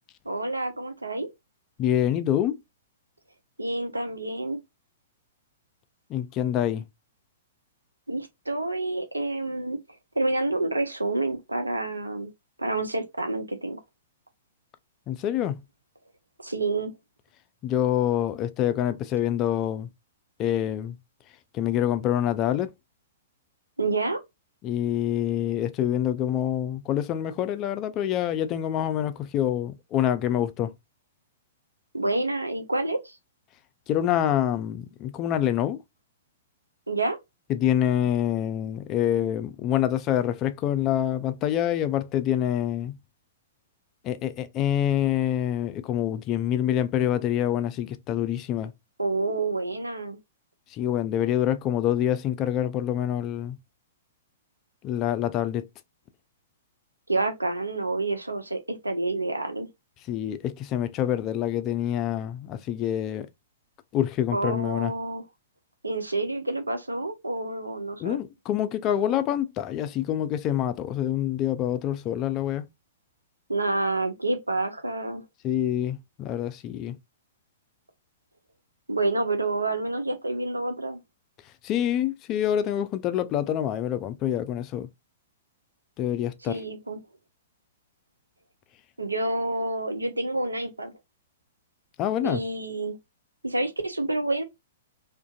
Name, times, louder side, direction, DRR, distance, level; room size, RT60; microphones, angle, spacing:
voice 1, 0.3-1.3 3.6-4.6 8.1-9.8 10.2-12.3 12.6-13.8 16.4-16.9 23.8-24.2 31.9-33.2 36.9-37.2 49.0-50.2 57.1-59.7 64.3-65.2 65.8-68.2 73.5-75.2 78.9-81.0 86.5-87.0 89.0-90.9 92.2-93.0 93.4-94.4, right 2 dB, 90° right, 0.5 m, -28 dB
voice 2, 1.8-2.6 6.1-6.8 15.1-15.6 17.6-19.9 20.4-21.0 21.5-22.7 24.6-30.7 33.9-35.8 37.5-43.0 44.0-48.7 50.7-53.6 54.8-55.6 60.1-63.3 63.9-64.9 68.0-72.7 75.4-77.0 81.6-84.9 86.0-86.6 92.0-92.4, left 11 dB, 30° left, 0.3 m, -26 dB
2.5 x 2.5 x 2.3 m
figure-of-eight pair, 110°, 0 cm